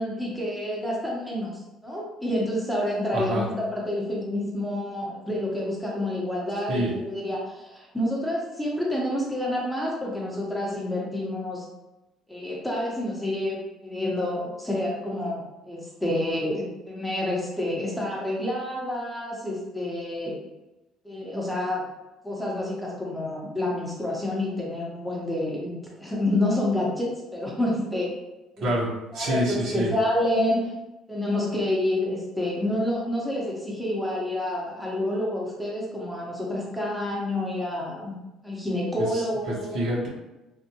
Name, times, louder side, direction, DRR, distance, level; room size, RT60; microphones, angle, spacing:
voice 1, 0.0-11.6 12.3-20.3 21.0-21.9 22.2-28.1 28.6-28.7 29.1-30.7 31.1-38.1 38.4-39.8, left 1 dB, 5° left, -4 dB, 0.8 m, -28 dB
voice 2, 3.1-3.4 6.7-6.9 28.6-29.9 39.5-40.1, right 1 dB, 65° right, -3 dB, 1.1 m, -27 dB
3.4 x 2.4 x 2.8 m, 1.0 s
cardioid pair, 115°, 0 cm